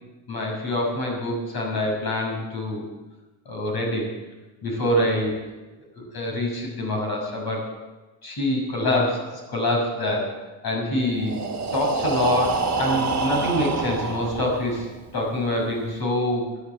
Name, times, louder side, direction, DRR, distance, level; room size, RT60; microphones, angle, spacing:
voice 1, 0.3-2.8 3.4-4.1 4.6-5.3 6.0-7.6 8.2-10.3 10.6-11.4 11.7-14.9 15.1-16.6, left 1 dB, 50° left, 0 dB, 6.6 m, -25 dB
Breathing, 11.1-15.0, right 4 dB, 35° right, 1.9 m, -27 dB
13.5 x 11.5 x 7.9 m, 1.2 s
cardioid pair, 115°, 48 cm